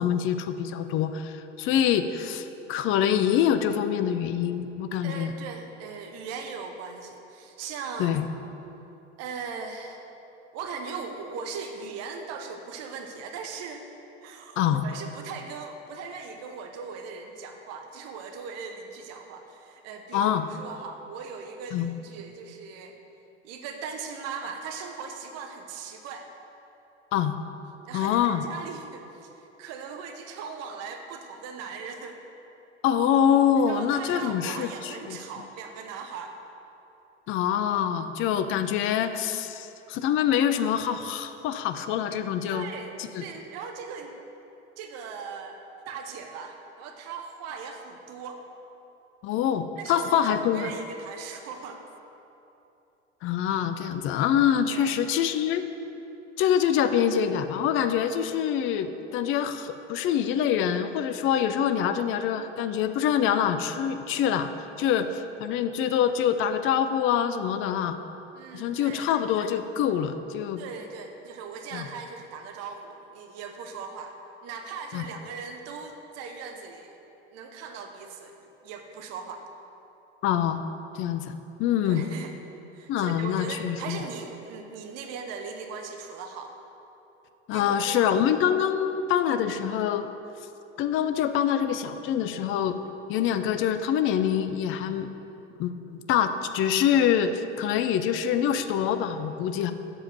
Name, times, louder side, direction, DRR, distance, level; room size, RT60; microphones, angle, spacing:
voice 1, 0.0-5.3 8.0-8.2 14.6-14.8 20.1-20.5 21.7-21.9 27.1-27.4 27.9-28.4 32.8-35.2 37.3-42.7 43.1-43.2 49.2-50.7 53.2-55.6 56.4-68.0 68.5-70.6 71.7-71.9 74.9-75.0 80.2-80.6 80.9-81.3 81.6-82.1 82.9-84.0 87.5-90.1 90.8-92.8 93.1-95.1 95.6-99.7, left 9 dB, 35° left, 10 dB, 0.6 m, -25 dB
voice 2, 5.0-8.2 9.2-10.1 10.5-13.8 14.2-23.0 23.4-26.3 27.8-32.2 33.7-36.3 42.5-44.2 44.8-45.6 45.9-48.4 49.8-51.8 54.7-55.0 68.3-69.1 70.6-74.1 74.4-77.0 77.3-79.5 81.8-82.4 82.7-86.5 87.5-88.1, right 5 dB, 45° right, 4 dB, 1.0 m, -39 dB
7.9 x 7.2 x 7.6 m, 2.9 s
figure-of-eight pair, 80°, 36 cm